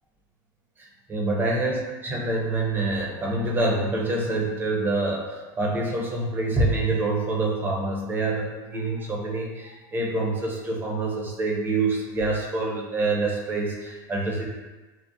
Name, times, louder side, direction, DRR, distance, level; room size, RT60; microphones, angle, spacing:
voice 1, 0.8-14.5, right 2 dB, 20° right, -2 dB, 0.6 m, -26 dB
2.5 x 2.0 x 2.5 m, 1.2 s
supercardioid pair, 115°, 11 cm